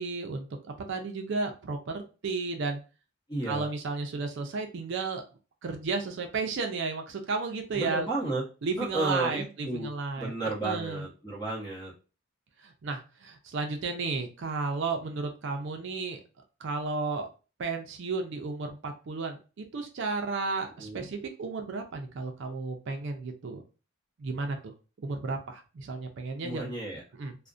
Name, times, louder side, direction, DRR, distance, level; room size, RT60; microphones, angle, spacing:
voice 1, 0.0-2.8 3.5-5.2 5.6-8.1 8.6-11.1 12.6-16.2 16.6-17.3 17.6-23.6 24.2-24.7 25.0-26.7 27.1-27.4, right 4 dB, 55° right, 4 dB, 0.4 m, -33 dB
voice 2, 3.3-3.7 7.7-8.4 8.8-9.9 10.2-11.9 20.8-21.0 26.4-27.0, right 2 dB, 20° left, -3 dB, 0.8 m, -32 dB
2.4 x 2.1 x 2.4 m, 0.33 s
head